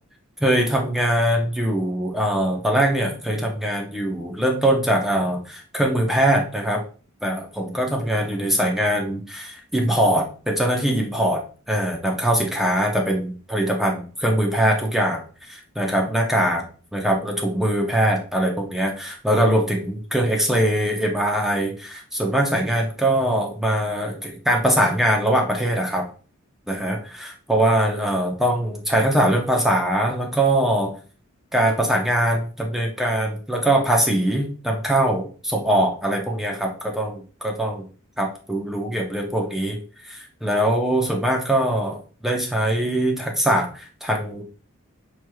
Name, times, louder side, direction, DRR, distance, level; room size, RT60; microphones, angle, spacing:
voice 1, 0.4-6.8 7.2-11.4 11.7-16.6 16.9-26.1 26.7-30.9 31.5-37.8 38.2-39.8 40.0-44.4, right 1 dB, ahead, 0 dB, 0.6 m, -22 dB
6.0 x 3.1 x 2.2 m, 0.38 s
head